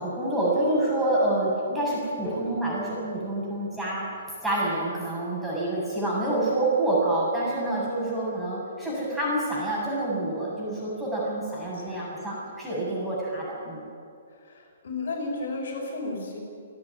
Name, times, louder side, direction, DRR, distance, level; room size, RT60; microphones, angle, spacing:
voice 1, 0.0-4.1 4.4-13.9, right 1 dB, 5° right, -7 dB, 7.1 m, -27 dB
sound 1, 2.2-5.9, equal, 20° left, 6.0 m, -43 dB
voice 2, 11.5-12.0 14.4-16.4, left 3 dB, 65° left, 0 dB, 6.0 m, -34 dB
29.0 x 9.8 x 9.8 m, 2.4 s
hypercardioid pair, 155°, 0 cm